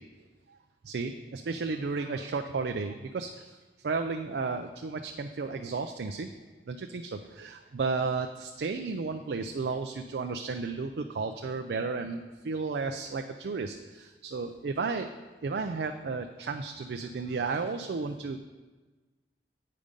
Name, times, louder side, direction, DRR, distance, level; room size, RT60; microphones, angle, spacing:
voice 1, 0.8-3.6 3.8-6.3 6.7-15.1 15.4-18.4, right 4 dB, 70° right, 5 dB, 0.4 m, -33 dB
8.5 x 5.3 x 5.1 m, 1.2 s
head